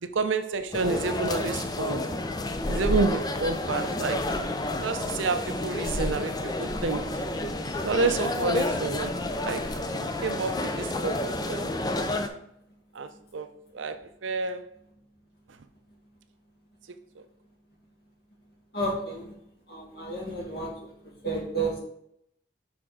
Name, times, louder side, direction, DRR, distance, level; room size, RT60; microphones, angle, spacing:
voice 1, 0.0-2.0 2.7-4.2 4.8-7.2 7.8-9.1 9.4-11.7 12.9-13.5 13.7-14.7, right 4 dB, 85° right, 0.6 m, -29 dB
sound 1, 0.7-12.3, left 1 dB, 20° left, 0.5 m, -30 dB
voice 2, 18.7-19.2 19.7-20.7 21.2-21.8, right 2 dB, 55° left, 2.0 m, -31 dB
6.2 x 4.4 x 4.9 m
head